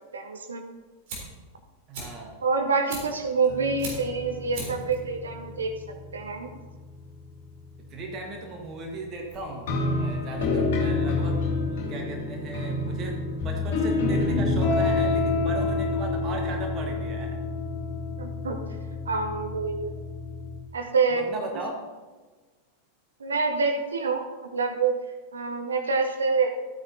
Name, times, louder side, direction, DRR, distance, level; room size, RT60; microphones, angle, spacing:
voice 1, 0.1-0.6 2.4-5.7 6.1-6.5 18.2-18.6 19.1-20.0 20.7-21.3 23.2-25.0 25.3-26.5, right 4 dB, 70° right, 5 dB, 0.8 m, -26 dB
Fire, 0.6-11.1, right 2 dB, 50° right, 3.4 m, -43 dB
voice 2, 1.9-2.3 7.8-17.4 21.1-21.8, right 2 dB, 30° right, 1 dB, 1.5 m, -37 dB
sound 1, 3.5-7.8 9.7-20.6, left 3 dB, 50° left, 2.3 m, -28 dB
12.5 x 9.3 x 2.8 m, 1.3 s
figure-of-eight pair, 90°, 0 cm